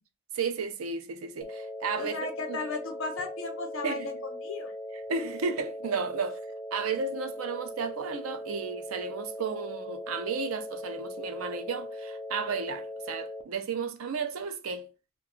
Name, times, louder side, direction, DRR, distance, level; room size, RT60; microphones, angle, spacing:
voice 1, 0.3-2.6 3.8-4.1 5.1-6.4 6.7-14.9, right 5 dB, 90° right, 0.5 m, -33 dB
sound 1, 1.4-13.4, left 1 dB, 30° left, 0.4 m, -40 dB
voice 2, 2.0-4.1 4.4-4.7, left 3 dB, 70° left, 0.7 m, -35 dB
2.3 x 2.3 x 3.6 m
head